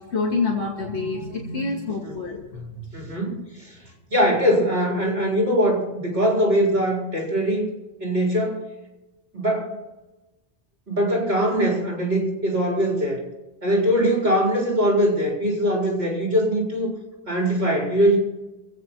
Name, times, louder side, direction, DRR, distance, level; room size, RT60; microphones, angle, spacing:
voice 1, 0.0-2.9, left 4 dB, 80° left, -1 dB, 2.0 m, -27 dB
voice 2, 2.9-3.7 4.1-7.7 8.0-8.6 9.3-9.8 10.9-13.2 13.6-16.9 17.3-18.2, equal, 65° right, -2 dB, 4.4 m, -22 dB
24.0 x 8.5 x 4.5 m, 1.0 s
omnidirectional pair, 1.1 m